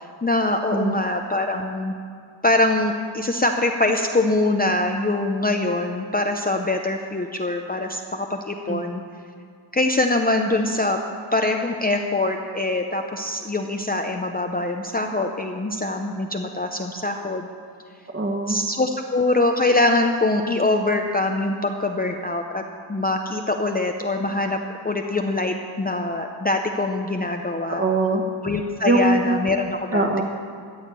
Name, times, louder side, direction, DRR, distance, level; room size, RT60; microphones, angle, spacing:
voice 1, 0.0-2.0 2.4-9.0 9.7-11.0 11.3-17.5 18.5-22.6 22.9-27.8 28.4-30.2, left 2 dB, 20° left, 3 dB, 0.6 m, -23 dB
voice 2, 18.1-18.6 27.7-28.2 28.8-29.3 29.9-30.2, right 2 dB, 25° right, 2 dB, 1.5 m, -22 dB
13.5 x 6.4 x 8.8 m, 2.2 s
wide cardioid pair, 115°, 46 cm